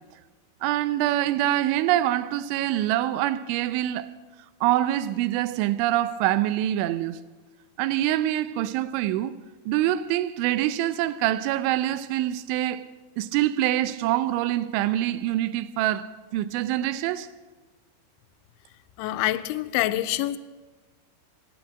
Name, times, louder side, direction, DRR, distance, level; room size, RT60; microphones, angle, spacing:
voice 1, 0.6-4.1 4.6-7.2 7.8-9.3 9.7-12.9 13.2-17.3, right 13 dB, 90° right, 3.1 m, -25 dB
voice 2, 19.0-20.4, left 14 dB, 90° left, 3.0 m, -26 dB
14.5 x 10.5 x 8.9 m
omnidirectional pair, 5.3 m